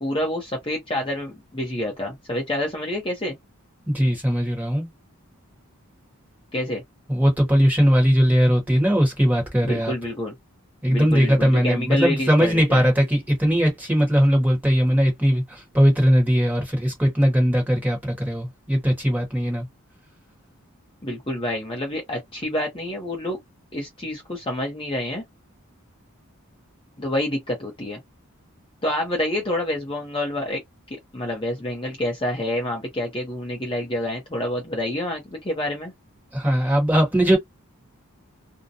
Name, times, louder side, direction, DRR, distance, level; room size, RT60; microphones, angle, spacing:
voice 1, 0.0-3.3 6.5-6.8 9.6-10.3 10.9-12.9 21.0-23.4 23.7-25.2 27.0-28.0 28.8-30.6 30.9-35.9, left 1 dB, 25° left, 0.7 m, -28 dB
voice 2, 3.9-4.9 7.1-9.9 10.8-19.6 36.3-37.4, equal, 5° right, 1.1 m, -19 dB
2.5 x 2.1 x 2.7 m
head